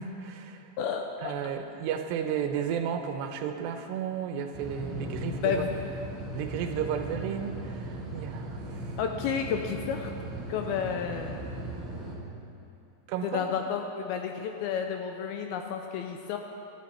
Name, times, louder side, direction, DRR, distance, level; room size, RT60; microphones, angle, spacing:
voice 1, 0.0-0.7 1.2-5.6 6.3-9.0 13.1-13.4, right 8 dB, 80° right, 6 dB, 2.9 m, -33 dB
voice 2, 0.8-1.3 5.4-5.7 9.0-10.1 10.5-11.4 13.2-16.4, left 7 dB, 80° left, 4 dB, 2.3 m, -31 dB
sound 1, 4.5-12.2, right 1 dB, 30° right, 1.7 m, -38 dB
18.0 x 12.5 x 4.3 m, 2.7 s
omnidirectional pair, 4.9 m